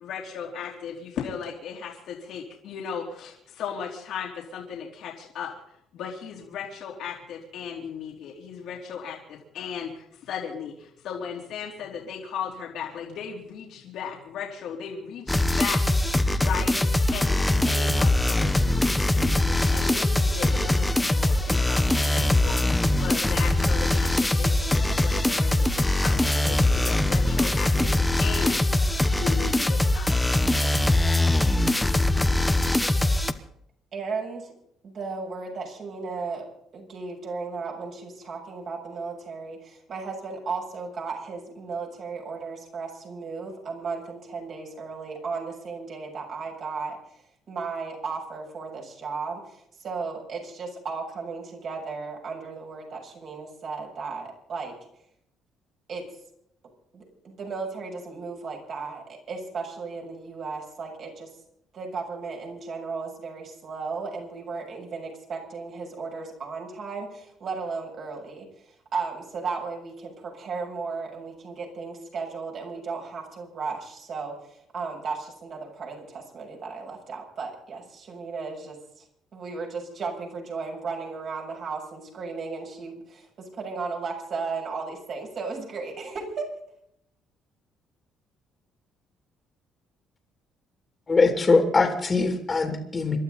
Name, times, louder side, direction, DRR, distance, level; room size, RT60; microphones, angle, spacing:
voice 1, 0.0-3.3 3.6-5.5 5.9-9.2 9.5-9.9 10.3-10.7 11.0-15.8 16.4-16.8 17.1-26.2 26.5-27.9 28.2-28.6 29.2-30.1, left 7 dB, 70° left, -1 dB, 3.2 m, -36 dB
sound 1, 15.3-33.3, left 1 dB, 10° left, 1.1 m, -22 dB
voice 2, 33.9-34.5 34.8-36.4 36.7-54.7 55.9-56.0 56.9-61.3 61.7-79.0 79.3-86.5, right 4 dB, 50° right, 0 dB, 7.2 m, -35 dB
voice 3, 91.1-93.2, left 3 dB, 25° left, 4 dB, 2.9 m, -22 dB
27.5 x 12.5 x 4.1 m, 0.72 s
cardioid pair, 125°, 0 cm